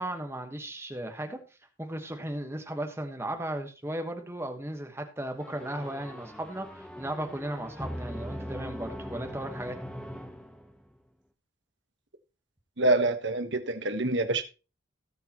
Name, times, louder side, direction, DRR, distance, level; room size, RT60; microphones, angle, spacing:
voice 1, 0.0-1.4 1.8-9.8, right 1 dB, 10° right, 1.2 m, -36 dB
sound 1, 5.4-11.0, equal, 5° left, 0.9 m, -40 dB
voice 2, 12.8-14.4, right 2 dB, 60° right, 1.2 m, -26 dB
17.5 x 6.5 x 3.0 m
head